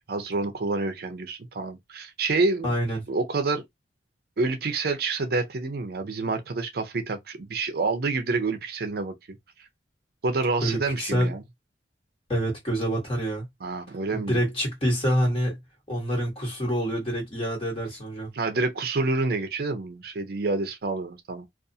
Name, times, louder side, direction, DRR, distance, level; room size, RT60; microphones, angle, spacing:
voice 1, 0.1-2.7 3.1-3.6 4.4-9.1 10.2-11.4 13.6-14.4 18.3-21.5, right 3 dB, 55° right, 0.5 m, -28 dB
voice 2, 2.6-3.0 10.6-11.3 12.3-13.4 14.1-15.6 15.9-18.3, equal, 30° left, 1.3 m, -26 dB
2.5 x 2.3 x 2.6 m
head